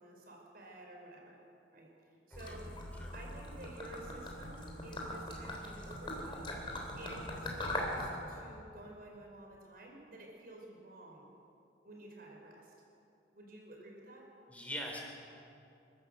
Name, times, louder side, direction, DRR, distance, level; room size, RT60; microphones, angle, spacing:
voice 1, 0.0-1.4 1.7-1.9 2.3-2.7 3.1-6.5 7.0-11.3 11.8-12.7 13.3-14.3, right 1 dB, 55° right, 0 dB, 5.2 m, -51 dB
Gurgling / Liquid, 2.3-8.1, left 1 dB, 25° left, 3.6 m, -41 dB
voice 2, 14.5-15.0, equal, 10° left, 0 dB, 4.0 m, -42 dB
28.5 x 12.5 x 8.0 m, 2.7 s
head